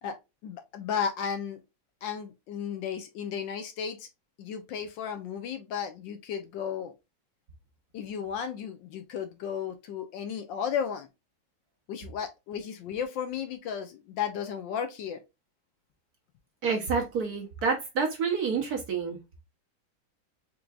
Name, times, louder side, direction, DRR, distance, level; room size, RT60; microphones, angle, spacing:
voice 1, 0.4-1.6 2.0-4.1 4.4-6.9 7.9-11.1 11.9-15.2, left 7 dB, 70° left, 1.3 m, -34 dB
voice 2, 16.6-19.2, right 5 dB, 55° right, 1.2 m, -28 dB
4.6 x 3.7 x 2.3 m
omnidirectional pair, 2.3 m